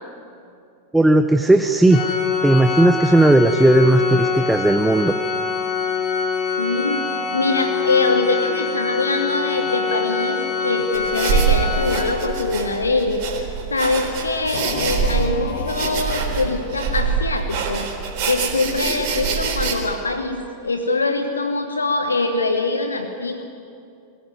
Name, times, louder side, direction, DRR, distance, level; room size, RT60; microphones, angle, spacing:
voice 1, 0.9-2.1 2.4-5.1, right 2 dB, 5° right, 7 dB, 0.8 m, -15 dB
Organ, 1.9-12.6, left 5 dB, 30° left, 1.9 m, -24 dB
voice 2, 6.6-7.0 7.3-17.9 18.2-23.5, left 3 dB, 75° left, 7 dB, 1.3 m, -23 dB
sound 1, 10.9-19.8, right 5 dB, 45° right, 3.9 m, -24 dB
Singing / Musical instrument, 14.5-17.4, left 4 dB, 60° left, 1.6 m, -32 dB
23.5 x 16.0 x 9.6 m, 2.5 s
figure-of-eight pair, 90°, 0 cm